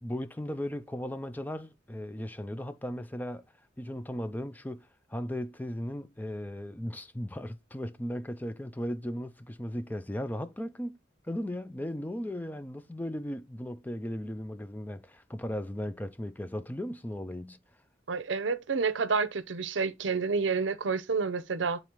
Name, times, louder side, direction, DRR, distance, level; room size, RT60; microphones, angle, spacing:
voice 1, 0.0-3.5 3.8-11.0 11.2-17.6, equal, 10° left, 0.4 m, -36 dB
voice 2, 18.1-21.8, right 5 dB, 75° right, 0.6 m, -29 dB
8.7 x 4.0 x 3.0 m
head